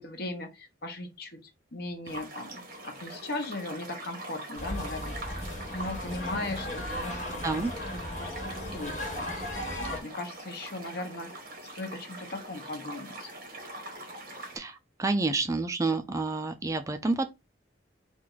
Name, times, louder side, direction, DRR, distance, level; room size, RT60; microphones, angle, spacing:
voice 1, 0.0-5.4 5.7-7.6 7.9-11.3 11.7-13.3, left 2 dB, 60° left, 1.0 m, -38 dB
sound 1, 2.1-14.6, right 1 dB, 55° right, 1.5 m, -43 dB
sound 2, 4.6-10.0, left 1 dB, 45° left, 1.5 m, -36 dB
voice 2, 14.5-17.2, right 3 dB, 20° right, 0.4 m, -29 dB
4.5 x 2.5 x 3.9 m
head